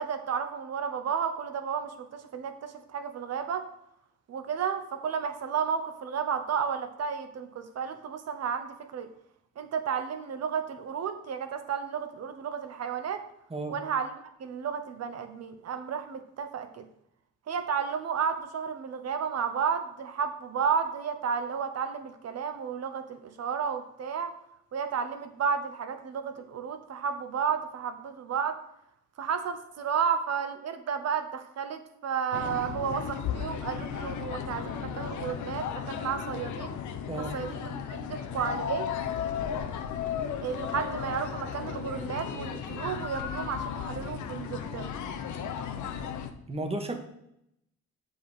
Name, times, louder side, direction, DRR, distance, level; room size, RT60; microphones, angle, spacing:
voice 1, 0.0-3.6 4.3-9.1 9.6-13.2 13.7-14.1 14.4-16.9 17.5-24.3 24.7-28.6 29.2-36.7 37.3-38.9 40.4-44.9, right 7 dB, 55° right, 8 dB, 1.1 m, -32 dB
sound 1, 32.3-46.3, left 8 dB, 70° left, 0.9 m, -35 dB
voice 2, 46.5-46.9, right 2 dB, 20° right, 5 dB, 1.4 m, -33 dB
8.0 x 5.4 x 5.0 m, 0.79 s
cardioid pair, 90°, 30 cm